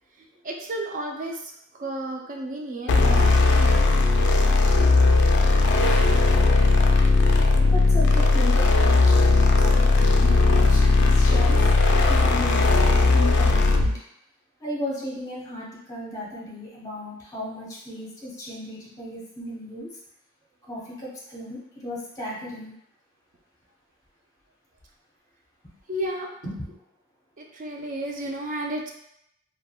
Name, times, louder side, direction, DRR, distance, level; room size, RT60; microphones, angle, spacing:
voice 1, 0.2-1.4 1.8-3.8 6.0-6.1 25.9-26.3 27.4-28.9, right 1 dB, 40° right, 0 dB, 0.4 m, -32 dB
sound 1, 2.9-14.0, left 3 dB, 55° left, 0.3 m, -18 dB
voice 2, 7.7-9.3 9.6-11.6 12.1-14.0 14.6-19.9 20.7-22.7 26.4-26.7, left 1 dB, 15° left, -6 dB, 0.8 m, -35 dB
3.3 x 2.2 x 2.2 m, 0.77 s
head